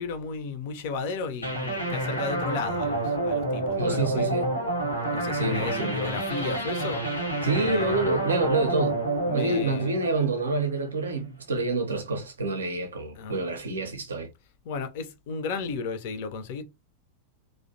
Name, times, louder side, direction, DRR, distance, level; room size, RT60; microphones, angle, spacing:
voice 1, 0.0-4.3 5.1-7.0 7.5-8.1 9.2-9.9 13.1-13.5 14.6-16.6, left 4 dB, 50° left, 0.4 m, -34 dB
sound 1, 1.4-10.8, right 1 dB, 85° left, 0.8 m, -29 dB
voice 2, 3.8-4.5 5.3-5.9 7.4-9.0 9.3-14.3, right 3 dB, 70° right, 0.5 m, -27 dB
2.4 x 2.1 x 2.5 m
figure-of-eight pair, 90°, 0 cm